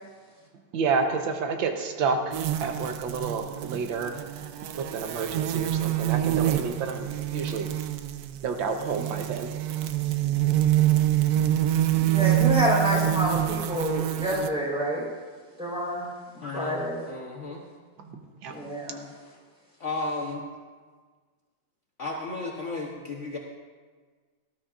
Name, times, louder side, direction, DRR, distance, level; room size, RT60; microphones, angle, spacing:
voice 1, 0.7-4.2 4.8-7.7 8.4-9.5 18.0-18.6, right 5 dB, 90° right, 5 dB, 1.7 m, -30 dB
sound 1, 2.3-14.5, right 13 dB, 70° right, 0.9 m, -26 dB
voice 2, 12.0-15.1 15.6-16.1 16.3-17.0 18.5-19.1, equal, 5° right, -5 dB, 4.0 m, -28 dB
voice 3, 16.4-17.6 19.8-20.5 22.0-23.4, left 2 dB, 45° left, -1 dB, 1.2 m, -34 dB
18.5 x 13.0 x 2.5 m, 1.5 s
omnidirectional pair, 2.1 m